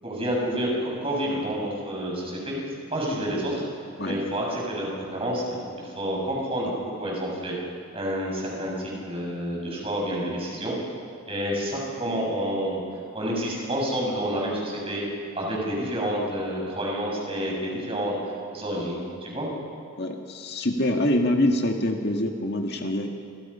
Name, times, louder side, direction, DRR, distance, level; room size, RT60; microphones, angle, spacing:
voice 1, 0.0-2.6 2.9-3.6 4.0-5.6 6.0-6.7 7.0-7.6 7.9-10.7 11.3-12.8 13.1-15.0 15.4-18.1 18.5-19.5, equal, 25° right, -3 dB, 7.3 m, -29 dB
voice 2, 20.0-23.1, left 1 dB, 55° left, 2 dB, 1.9 m, -25 dB
28.0 x 25.5 x 5.7 m, 2.3 s
head